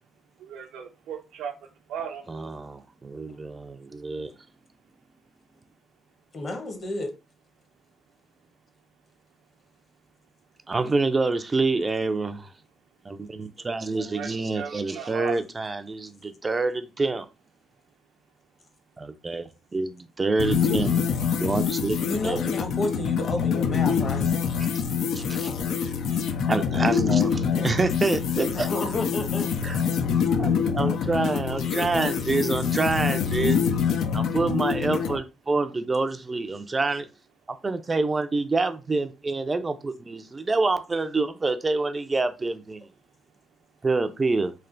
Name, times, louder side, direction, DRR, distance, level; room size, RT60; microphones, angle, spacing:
voice 1, 0.4-2.3 13.9-15.4 31.5-31.9, right 8 dB, 85° right, 0.8 m, -37 dB
voice 2, 2.3-4.3 10.7-12.5 13.0-17.3 19.0-20.9 21.4-22.0 22.2-22.4 25.1-25.5 25.8-25.9 26.5-28.7 29.6-29.8 30.4-33.6 34.1-37.1 37.6-42.9 43.8-44.5, right 3 dB, 25° right, 0.4 m, -27 dB
voice 3, 6.3-7.1 20.6-20.9 22.0-24.3 27.5-27.9 28.5-29.5, left 2 dB, 45° left, 1.0 m, -31 dB
sound 1, 20.4-35.2, left 6 dB, 75° left, 0.5 m, -25 dB
3.3 x 2.5 x 3.8 m
cardioid pair, 90°, 0 cm